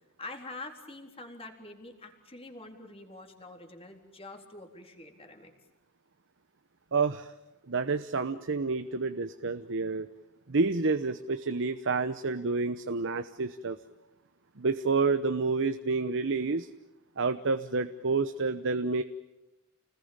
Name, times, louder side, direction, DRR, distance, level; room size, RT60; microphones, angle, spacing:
voice 1, 0.2-5.5, left 2 dB, 25° left, 4 dB, 3.9 m, -45 dB
voice 2, 6.9-7.3 7.7-10.1 10.5-13.8 14.6-16.7 17.2-19.0, right 4 dB, 60° right, 11 dB, 1.0 m, -29 dB
29.5 x 20.0 x 8.9 m, 1.0 s
head